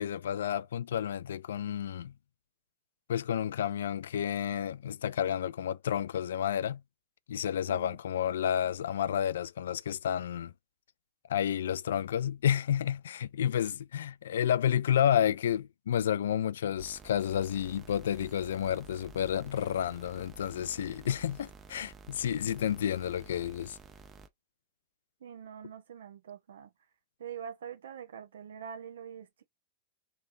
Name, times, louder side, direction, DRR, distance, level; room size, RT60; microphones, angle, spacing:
voice 1, 0.0-2.1 3.1-6.8 7.3-10.5 11.3-23.8, left 9 dB, 75° left, 0.3 m, -30 dB
voice 2, 7.7-8.0 25.2-26.7 27.2-29.4, right 8 dB, 75° right, 1.0 m, -44 dB
sound 1, 16.8-24.3, right 4 dB, 25° right, 0.7 m, -52 dB
3.4 x 3.0 x 2.6 m
hypercardioid pair, 100°, 0 cm